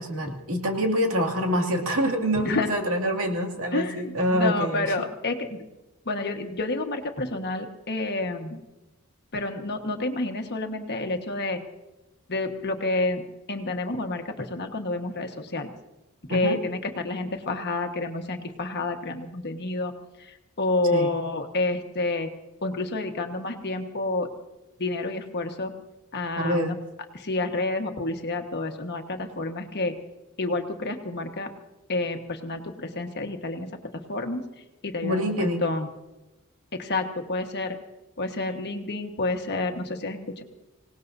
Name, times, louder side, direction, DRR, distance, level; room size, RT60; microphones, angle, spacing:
voice 1, 0.0-4.9 16.3-16.6 20.9-21.1 26.4-26.8 35.0-35.6, equal, 70° right, 2 dB, 2.4 m, -26 dB
voice 2, 3.7-5.6 6.0-8.6 9.3-11.6 12.3-13.2 13.5-15.7 16.3-22.3 22.6-24.3 24.8-25.7 26.1-26.8 27.1-30.0 30.4-31.5 31.9-35.9 36.7-37.8 38.2-40.4, left 2 dB, 50° left, 5 dB, 1.5 m, -29 dB
26.0 x 18.0 x 2.7 m, 1.0 s
head